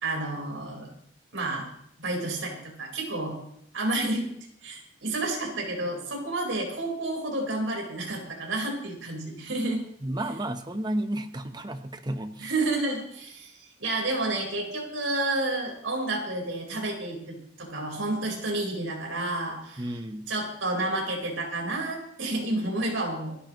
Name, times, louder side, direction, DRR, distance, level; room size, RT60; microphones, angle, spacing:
voice 1, 0.0-0.9 1.3-1.7 2.0-3.4 3.7-4.3 4.6-9.8 12.4-20.0 20.3-23.3, right 2 dB, 85° right, 0 dB, 4.5 m, -30 dB
voice 2, 10.0-12.5 19.8-20.3, right 1 dB, 20° right, 8 dB, 1.0 m, -32 dB
28.5 x 11.5 x 3.1 m, 0.73 s
head